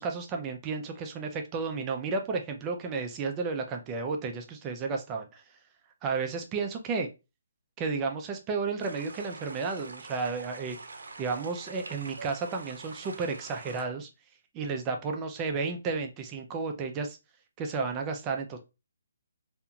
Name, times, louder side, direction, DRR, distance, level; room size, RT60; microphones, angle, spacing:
voice 1, 0.0-5.4 6.0-7.1 7.8-10.8 11.2-14.1 14.5-17.2 17.6-18.6, right 4 dB, 15° right, 0.3 m, -32 dB
sound 1, 8.8-13.8, right 3 dB, 90° right, 0.5 m, -45 dB
2.4 x 2.3 x 2.8 m
hypercardioid pair, 175°, 0 cm